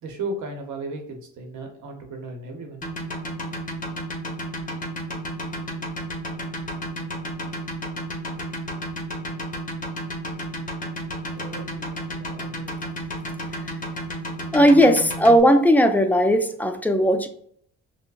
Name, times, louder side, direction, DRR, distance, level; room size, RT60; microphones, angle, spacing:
voice 1, 0.0-2.8 11.3-12.7, right 2 dB, 75° right, 4 dB, 1.0 m, -35 dB
sound 1, 2.8-15.4, equal, 25° left, 0.8 m, -31 dB
voice 2, 14.5-17.3, equal, 5° left, 7 dB, 0.3 m, -17 dB
5.4 x 2.0 x 2.4 m, 0.63 s
cardioid pair, 90°, 30 cm